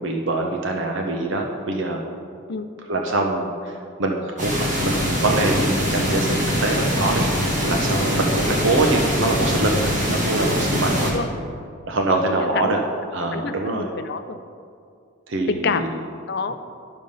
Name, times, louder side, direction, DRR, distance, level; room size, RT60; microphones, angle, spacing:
voice 1, 0.0-2.1 2.9-7.3 7.6-11.1 11.9-12.8 13.1-13.9 15.3-16.0 16.5-16.6, right 2 dB, 60° right, 2 dB, 0.7 m, -24 dB
sound 1, 4.4-11.1, equal, 35° right, 1.7 m, -23 dB
voice 2, 12.1-12.8 13.3-14.4 15.5-16.6, left 4 dB, 50° left, 9 dB, 0.5 m, -28 dB
11.5 x 5.2 x 5.4 m, 2.3 s
head